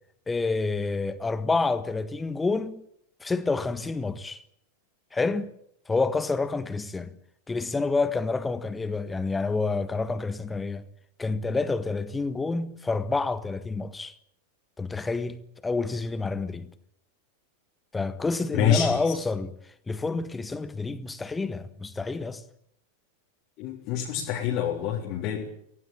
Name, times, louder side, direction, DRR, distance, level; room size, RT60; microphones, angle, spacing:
voice 1, 0.3-2.8 3.2-4.4 5.1-5.5 5.9-7.1 7.5-10.9 11.2-14.1 14.8-16.7 17.9-19.5 19.9-22.4, left 3 dB, 10° left, 1.6 m, -28 dB
voice 2, 18.5-19.1 23.6-25.4, left 9 dB, 40° left, 3.7 m, -26 dB
24.0 x 17.0 x 8.7 m
figure-of-eight pair, 90°, 0 cm